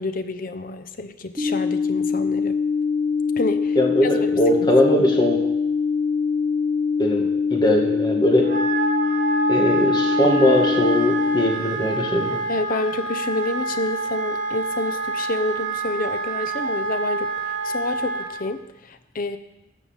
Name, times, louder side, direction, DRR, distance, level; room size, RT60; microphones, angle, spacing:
voice 1, 0.0-2.6 3.4-3.8 4.0-4.1 4.6-4.7 12.3-17.3 17.6-19.4, left 2 dB, 45° left, 10 dB, 0.7 m, -28 dB
sound 1, 1.4-11.4, left 5 dB, 10° right, 2.0 m, -23 dB
voice 2, 3.8-5.4 7.0-8.5 9.5-12.4, left 1 dB, 25° left, 0 dB, 2.0 m, -20 dB
Wind instrument woodwind instrument, 8.4-18.3, right 3 dB, 40° right, 2.2 m, -27 dB
13.0 x 5.9 x 7.3 m, 0.92 s
head